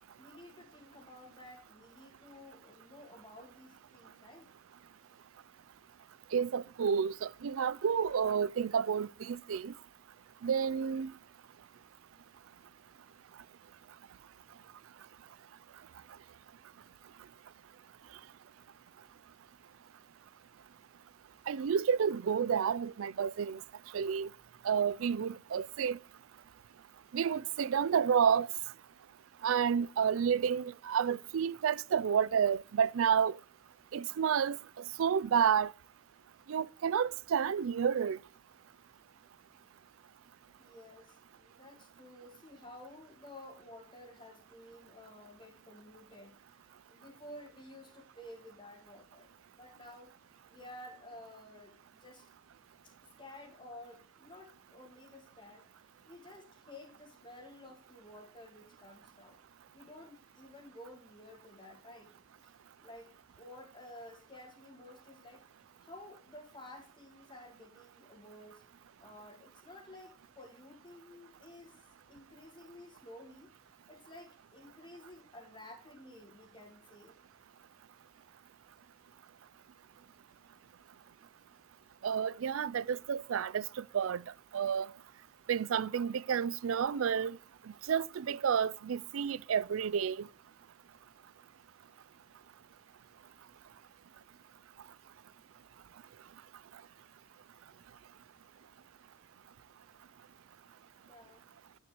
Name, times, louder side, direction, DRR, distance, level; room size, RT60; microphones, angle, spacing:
voice 1, 0.2-4.5 5.1-5.2 40.6-49.3 49.6-50.1 50.5-52.3 53.2-55.7 56.0-59.4 59.7-62.1 62.4-62.5 62.8-65.4 65.8-68.6 69.0-77.2 101.1-101.4, left 1 dB, 25° left, 2.0 m, -53 dB
voice 2, 6.3-9.7 10.4-11.1 21.5-23.6 23.9-24.3 24.6-26.0 27.1-28.5 29.4-33.4 33.9-34.6 35.0-35.7 36.5-38.2 82.0-84.2 84.5-84.9 85.5-87.4 87.9-90.3, right 7 dB, 85° right, 0.4 m, -30 dB
11.0 x 8.7 x 3.0 m
head